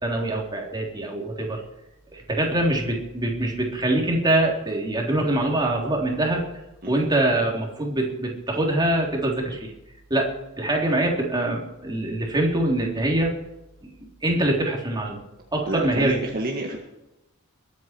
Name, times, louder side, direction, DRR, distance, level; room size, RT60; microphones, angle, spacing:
voice 1, 0.0-1.6 2.1-6.4 6.9-9.7 10.1-13.3 13.8-15.2 15.5-16.2, right 1 dB, 20° right, 0 dB, 3.5 m, -24 dB
voice 2, 15.7-16.8, right 1 dB, 45° right, 0 dB, 1.9 m, -28 dB
22.0 x 9.5 x 4.6 m, 0.92 s
head